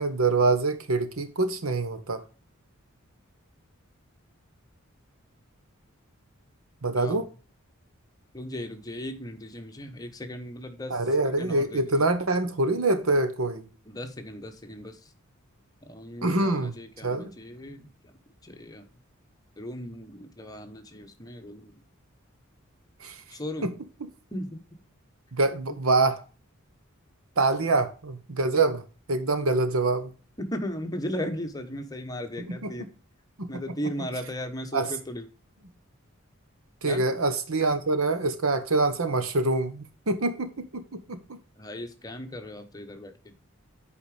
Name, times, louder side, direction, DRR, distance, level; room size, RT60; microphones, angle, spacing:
voice 1, 0.0-2.2 6.8-7.3 10.9-13.7 16.2-16.8 17.0-17.3 23.0-23.2 23.6-23.7 25.3-26.2 27.4-28.8 29.1-30.1 32.4-32.7 33.4-33.6 34.7-34.9 36.8-41.4, right 3 dB, 90° right, 1.2 m, -25 dB
voice 2, 6.9-7.3 8.3-11.0 11.4-11.8 13.9-15.1 15.9-18.1 18.4-18.9 19.6-21.7 23.3-23.7 24.3-24.6 25.7-25.8 30.4-32.9 33.5-35.2 36.9-37.0 41.6-43.3, equal, 20° left, 1.1 m, -37 dB
8.3 x 5.0 x 5.1 m
head